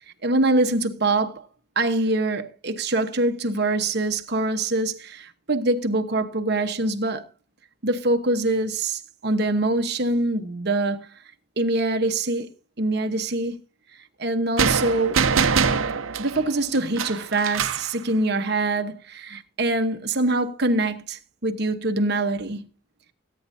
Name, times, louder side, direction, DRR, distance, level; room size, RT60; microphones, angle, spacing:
voice 1, 0.2-1.5 1.7-7.2 7.8-11.1 11.6-12.5 12.8-13.5 14.2-15.2 16.2-22.6, right 2 dB, 55° right, 1.2 m, -24 dB
sound 1, 14.6-17.9, right 6 dB, 85° right, 0.8 m, -23 dB
17.5 x 9.5 x 2.8 m
head